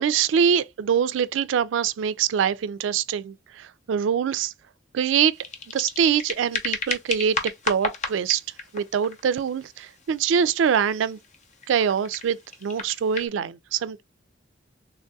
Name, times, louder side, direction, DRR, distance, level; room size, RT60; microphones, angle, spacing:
voice 1, 0.0-4.5 4.9-5.4 5.7-7.4 7.7-8.4 8.7-11.2 11.7-14.0, right 7 dB, 85° right, 0.3 m, -24 dB
sound 1, 5.3-13.3, left 4 dB, 40° left, 0.6 m, -34 dB
3.5 x 2.2 x 2.6 m
head